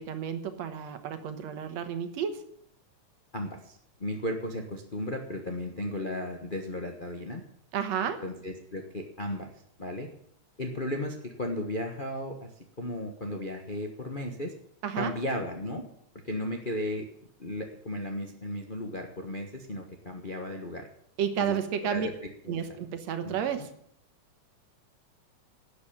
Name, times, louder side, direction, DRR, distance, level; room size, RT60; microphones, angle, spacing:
voice 1, 0.0-2.4 7.7-8.2 14.8-15.1 21.2-22.1 22.5-23.7, right 8 dB, 70° right, 9 dB, 2.3 m, -31 dB
voice 2, 3.3-7.4 8.2-9.5 9.8-10.1 10.6-12.5 12.8-14.5 15.0-15.9 16.2-17.1 17.4-20.9 21.4-21.6 21.9-22.6 23.2-23.4, left 1 dB, 60° left, 2 dB, 0.5 m, -35 dB
12.0 x 8.3 x 8.7 m, 0.69 s
omnidirectional pair, 3.4 m